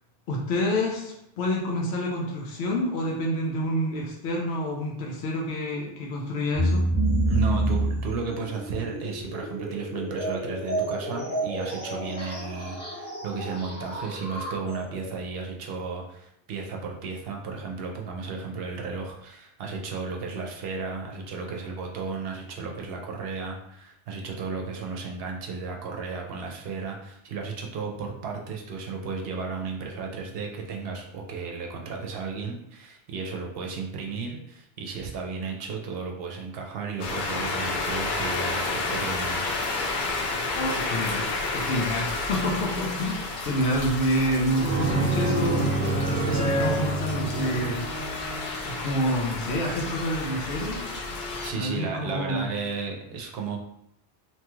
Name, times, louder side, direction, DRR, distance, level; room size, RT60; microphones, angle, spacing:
voice 1, 0.3-6.9 40.4-41.3 41.5-45.7 46.0-47.8 48.6-50.9 51.5-52.5, equal, 85° left, -2 dB, 0.9 m, -28 dB
sound 1, 6.5-15.1, right 1 dB, 10° left, 0.7 m, -29 dB
voice 2, 7.3-39.6 51.4-53.6, right 4 dB, 70° right, 1 dB, 0.7 m, -34 dB
sound 2, 37.0-51.5, left 3 dB, 60° left, 0.6 m, -31 dB
sound 3, 44.6-48.8, right 2 dB, 25° right, 0.8 m, -27 dB
2.9 x 2.3 x 3.0 m, 0.80 s
omnidirectional pair, 1.1 m